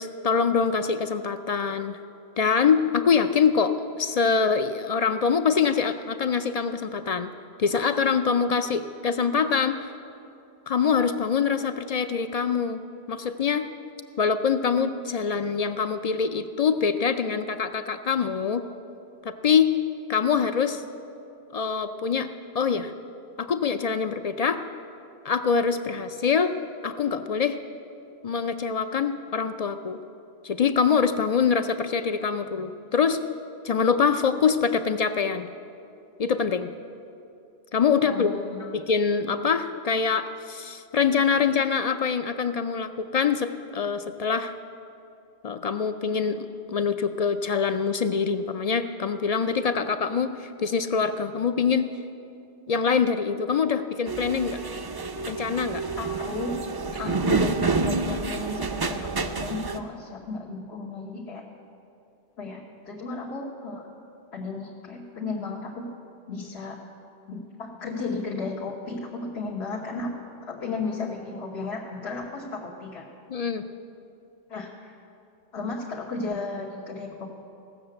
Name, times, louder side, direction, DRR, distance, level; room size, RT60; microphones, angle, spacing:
voice 1, 0.0-2.0 2.4-7.3 7.6-9.8 10.7-12.8 13.1-13.7 14.2-18.6 19.2-19.7 20.1-20.8 21.5-22.3 22.5-22.9 23.4-24.6 25.2-26.5 26.8-27.6 28.2-30.0 30.4-33.2 33.6-35.5 36.2-36.7 37.7-38.3 38.7-44.5 45.4-51.9 52.7-54.6 55.3-55.8 57.0-57.2 73.3-73.7, left 6 dB, 55° left, 10 dB, 0.4 m, -24 dB
voice 2, 38.0-38.7 56.0-56.5 57.0-61.4 62.4-63.9 64.3-65.9 66.3-66.8 67.3-70.1 70.5-73.1 74.5-74.9 75.5-77.3, left 3 dB, 80° left, -4 dB, 1.5 m, -34 dB
sound 1, 54.1-59.8, right 4 dB, 30° right, 0.4 m, -28 dB
16.5 x 6.6 x 7.7 m, 2.6 s
omnidirectional pair, 1.1 m